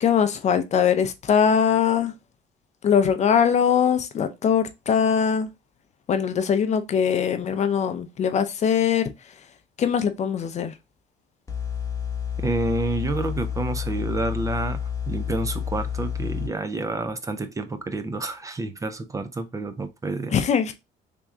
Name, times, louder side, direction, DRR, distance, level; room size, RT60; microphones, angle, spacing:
voice 1, 0.0-2.1 2.8-5.5 6.1-9.1 9.8-10.7 20.3-20.7, left 7 dB, 40° left, 0.5 m, -21 dB
sound 1, 11.5-16.5, left 8 dB, 20° left, 1.0 m, -29 dB
voice 2, 12.4-14.8 15.1-20.4, right 2 dB, 20° right, 0.5 m, -29 dB
3.5 x 3.0 x 3.5 m
cardioid pair, 110°, 17 cm